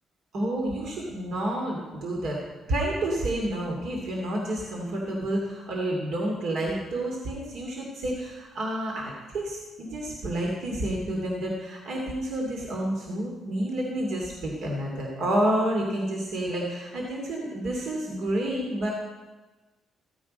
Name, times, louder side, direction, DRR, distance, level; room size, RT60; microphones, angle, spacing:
voice 1, 0.3-18.9, right 1 dB, 70° right, -1 dB, 2.6 m, -29 dB
15.0 x 8.6 x 5.3 m, 1.2 s
cardioid pair, 90°, 0 cm